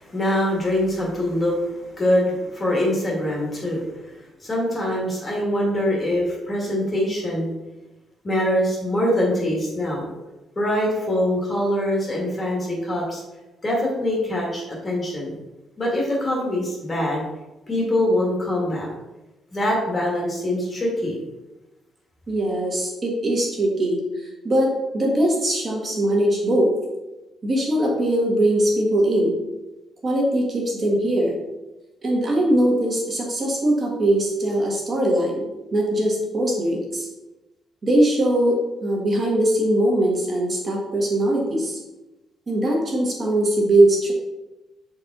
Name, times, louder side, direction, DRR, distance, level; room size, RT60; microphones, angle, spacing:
voice 1, 0.0-3.9 4.4-7.5 8.2-10.1 10.5-13.2 13.6-15.4 15.8-17.2 17.7-18.9 19.5-21.2, left 1 dB, 25° left, -3 dB, 1.7 m, -23 dB
voice 2, 22.3-26.7 27.4-29.4 30.0-31.3 32.0-35.4 35.7-37.1 37.8-41.8 42.5-44.1, right 1 dB, 25° right, -1 dB, 1.7 m, -21 dB
6.9 x 4.4 x 4.0 m, 1.1 s
cardioid pair, 155°, 0 cm